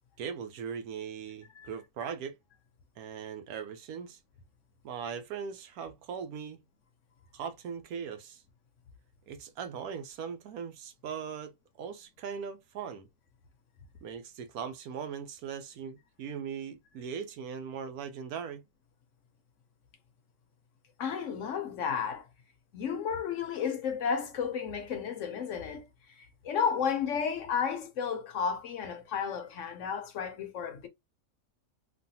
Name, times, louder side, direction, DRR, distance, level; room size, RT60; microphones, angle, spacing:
voice 1, 0.2-2.4 3.0-4.2 4.8-6.6 7.3-8.4 9.3-11.5 11.8-13.1 14.0-18.6, right 7 dB, 80° right, 1.1 m, -39 dB
voice 2, 21.0-22.2 22.7-25.9 26.4-30.9, left 7 dB, 65° left, 0.9 m, -32 dB
3.2 x 2.3 x 2.6 m
omnidirectional pair, 1.5 m